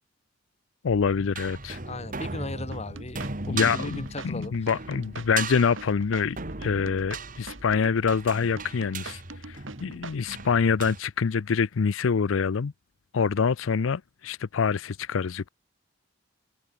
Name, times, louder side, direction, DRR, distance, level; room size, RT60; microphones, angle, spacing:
voice 1, 0.8-1.8 3.5-12.7 13.1-15.5, left 6 dB, 90° left, 0.5 m, -26 dB
sound 1, 0.9-11.0, right 3 dB, 45° right, 2.7 m, -38 dB
voice 2, 1.8-4.7, left 2 dB, 35° left, 2.2 m, -37 dB
sound 2, 2.7-10.5, right 3 dB, 85° right, 6.0 m, -42 dB
head